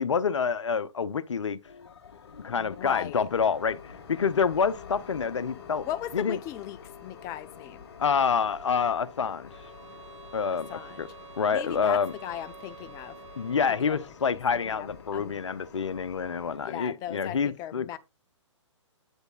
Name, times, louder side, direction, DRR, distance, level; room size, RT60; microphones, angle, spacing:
voice 1, 0.0-1.6 2.4-5.9 6.1-6.4 8.0-9.5 10.3-10.7 11.0-11.1 11.4-12.1 13.4-18.0, left 6 dB, 70° left, 0.7 m, -27 dB
sound 1, 1.6-16.6, left 6 dB, 55° left, 1.3 m, -48 dB
voice 2, 2.6-3.3 5.8-7.8 10.7-11.0 11.5-13.2 13.7-14.0 14.2-14.9 15.1-15.4 16.5-18.0, left 12 dB, 20° left, 0.5 m, -38 dB
sound 2, 9.5-14.2, right 7 dB, 70° right, 1.5 m, -49 dB
9.1 x 8.0 x 2.4 m
figure-of-eight pair, 125°, 16 cm